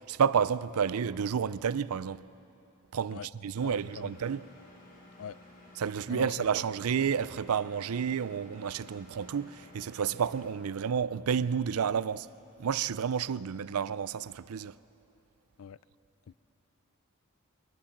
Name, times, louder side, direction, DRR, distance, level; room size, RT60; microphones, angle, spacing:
voice 1, 0.1-2.3 2.9-4.5 5.8-12.3 12.6-14.7, right 7 dB, 85° right, 0.5 m, -30 dB
Engine, 3.5-10.5, left 1 dB, 40° left, 3.9 m, -54 dB
voice 2, 3.6-4.2 5.2-5.4 6.1-6.3 15.6-15.8, left 7 dB, 70° left, 0.4 m, -42 dB
23.0 x 19.0 x 7.2 m
head